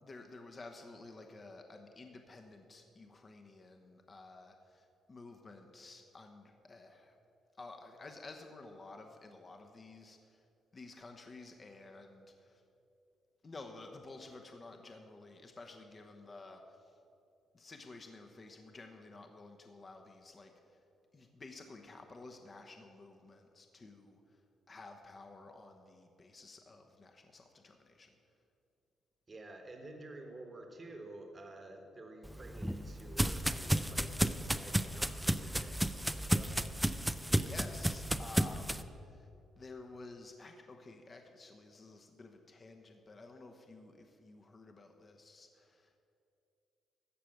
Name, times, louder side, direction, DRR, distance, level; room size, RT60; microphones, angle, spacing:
voice 1, 0.0-7.2 7.6-10.4 10.7-12.6 13.4-16.9 17.5-20.8 21.1-24.4 24.7-28.1 37.4-39.3 39.6-45.9, left 3 dB, 35° left, 4 dB, 0.9 m, -52 dB
voice 2, 29.3-36.1 36.3-36.8, right 2 dB, 30° right, 4 dB, 1.3 m, -50 dB
sound 1, 32.2-38.8, right 1 dB, 5° right, 0.4 m, -33 dB
14.0 x 5.0 x 7.9 m, 2.7 s
cardioid pair, 90°, 0 cm